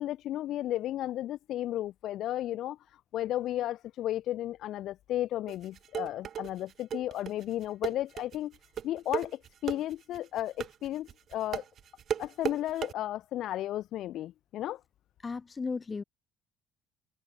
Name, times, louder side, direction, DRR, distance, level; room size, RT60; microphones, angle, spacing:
voice 1, 0.0-2.8 3.1-8.6 8.8-11.6 12.2-14.8, left 13 dB, 60° left, 3.5 m, -34 dB
sound 1, 5.5-12.9, right 9 dB, 45° right, 0.6 m, -35 dB
voice 2, 15.2-16.0, left 4 dB, 25° left, 3.0 m, -35 dB
supercardioid pair, 100°, 0 cm